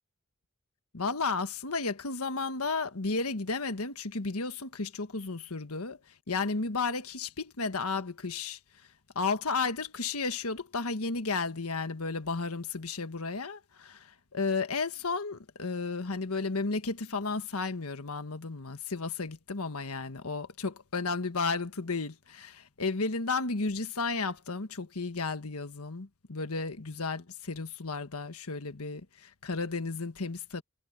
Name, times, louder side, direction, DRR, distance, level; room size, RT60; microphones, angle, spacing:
voice 1, 0.9-6.0 6.3-8.6 9.1-30.6, left 4 dB, 85° left, 1.4 m, -33 dB
head